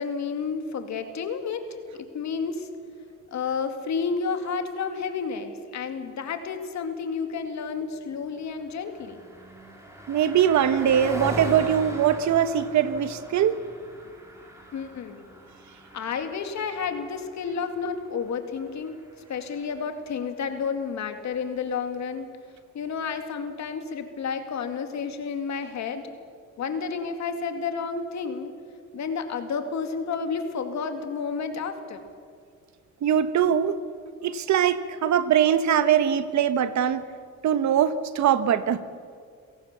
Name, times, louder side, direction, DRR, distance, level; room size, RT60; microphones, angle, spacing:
voice 1, 0.0-1.6 2.0-2.7 3.3-9.2 14.7-15.3 15.9-19.0 19.3-22.3 22.7-26.1 26.6-28.5 28.9-32.1, left 5 dB, 65° left, 7 dB, 2.4 m, -31 dB
Car passing by, 8.2-19.9, equal, 10° right, 5.0 m, -40 dB
voice 2, 10.1-13.6 33.0-33.8 34.2-37.0 37.4-38.8, right 9 dB, 70° right, 12 dB, 1.2 m, -22 dB
28.5 x 17.5 x 6.9 m, 2.1 s
cardioid pair, 90°, 30 cm